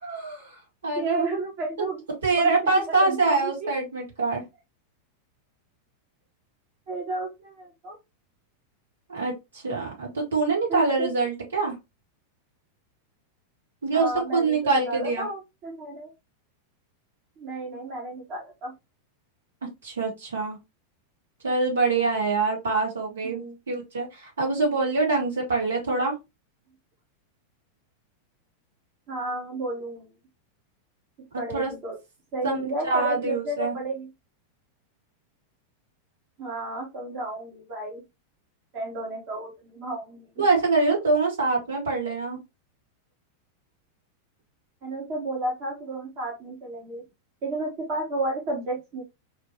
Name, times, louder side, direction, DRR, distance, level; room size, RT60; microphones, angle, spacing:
voice 1, 0.0-0.5 0.8-1.2 2.2-4.4 9.1-11.8 13.8-15.3 19.8-20.6 21.4-23.4 23.7-26.1 31.3-31.7 32.4-33.7 40.4-42.4, right 3 dB, 65° right, -1 dB, 2.4 m, -25 dB
voice 2, 0.9-2.0 2.4-3.7 6.9-8.0 10.7-11.1 13.9-16.1 17.4-18.7 23.2-23.5 29.1-30.1 31.4-32.0 32.3-34.1 36.4-38.0 38.7-40.4 44.8-47.0 47.4-49.0, right 2 dB, 40° right, -2 dB, 1.8 m, -32 dB
4.8 x 3.1 x 3.2 m, 0.23 s
figure-of-eight pair, 90°, 0 cm